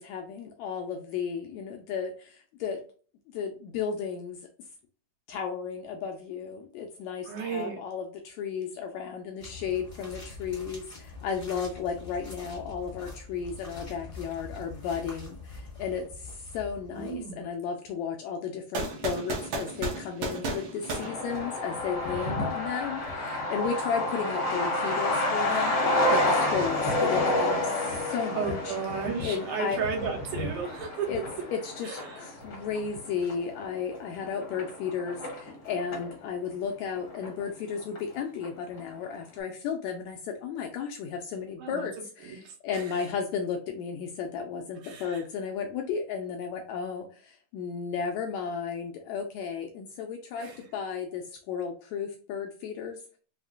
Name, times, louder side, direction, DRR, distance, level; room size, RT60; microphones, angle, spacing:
voice 1, 0.0-2.8 3.3-4.4 5.3-25.7 26.1-28.7 29.2-29.8 31.1-31.2 31.5-53.2, left 6 dB, 80° left, 3 dB, 1.6 m, -34 dB
voice 2, 7.2-7.8 16.9-17.4 28.3-31.1 31.8-32.2 41.6-41.9 42.2-43.1 44.8-45.3 50.3-50.7, right 5 dB, 85° right, 0 dB, 2.6 m, -34 dB
sound 1, 9.4-17.5, left 3 dB, 25° left, 0.7 m, -44 dB
sound 2, 18.7-21.9, right 2 dB, 65° right, 1.5 m, -34 dB
Truck, 20.9-36.1 36.4-36.5 36.8-37.7 38.0-38.1 38.4-38.8, left 1 dB, 60° left, 1.0 m, -30 dB
5.5 x 2.1 x 2.4 m, 0.40 s
omnidirectional pair, 3.6 m